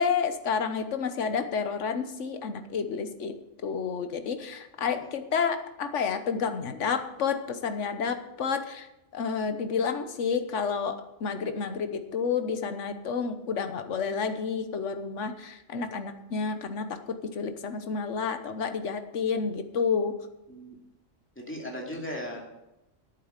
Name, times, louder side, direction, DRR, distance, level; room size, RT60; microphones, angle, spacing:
voice 1, 0.0-3.3 3.6-8.9 9.1-20.1, left 6 dB, 75° left, 8 dB, 1.4 m, -30 dB
voice 2, 21.4-22.4, equal, 10° left, -1 dB, 2.5 m, -37 dB
11.0 x 8.4 x 8.1 m, 0.94 s
omnidirectional pair, 1.3 m